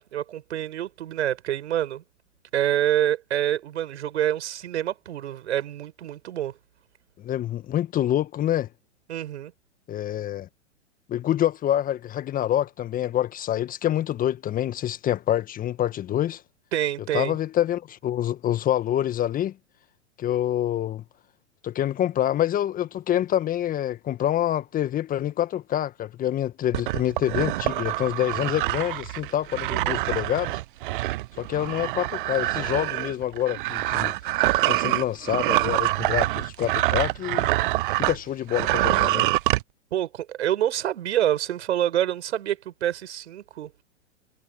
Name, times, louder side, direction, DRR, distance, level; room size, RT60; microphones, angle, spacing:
voice 1, 0.0-2.0 2.5-6.5 9.1-9.5 16.7-17.4 29.7-30.0 39.9-43.8, right 11 dB, 60° right, 6.5 m, -27 dB
voice 2, 7.2-8.7 9.9-10.5 11.1-16.4 17.1-19.5 20.2-21.0 21.6-30.6 31.4-34.1 34.6-37.5 38.0-39.3, left 11 dB, 20° left, 1.6 m, -26 dB
sound 1, 26.7-38.2 38.5-39.6, right 18 dB, 45° right, 0.7 m, -25 dB
figure-of-eight pair, 110°, 38 cm